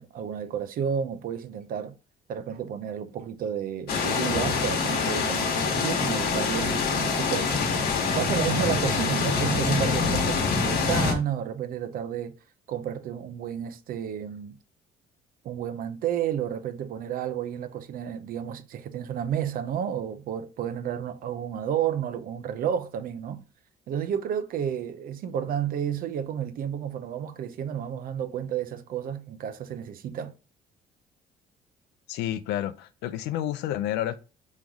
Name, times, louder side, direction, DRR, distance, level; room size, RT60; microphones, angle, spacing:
voice 1, 0.0-1.9 2.3-12.3 12.7-14.6 15.4-23.4 23.9-30.3, right 9 dB, 55° right, 0.5 m, -31 dB
sound 1, 3.9-11.1, left 5 dB, 65° left, 1.2 m, -25 dB
voice 2, 32.1-34.2, left 12 dB, 85° left, 0.5 m, -30 dB
3.9 x 3.1 x 3.4 m
cardioid pair, 110°, 17 cm